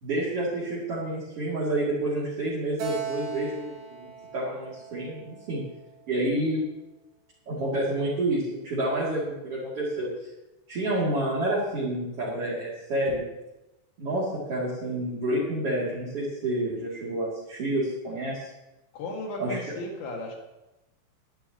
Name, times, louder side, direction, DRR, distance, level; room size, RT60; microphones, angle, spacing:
voice 1, 0.0-5.6 6.1-6.6 7.5-10.1 10.7-13.2 14.0-18.5 19.4-19.6, right 1 dB, 35° right, -7 dB, 2.9 m, -29 dB
Keyboard (musical), 2.8-6.2, right 6 dB, 80° right, 6.2 m, -39 dB
voice 2, 18.9-20.4, left 1 dB, 65° left, 0 dB, 4.1 m, -35 dB
21.0 x 11.0 x 3.0 m, 0.98 s
omnidirectional pair, 5.8 m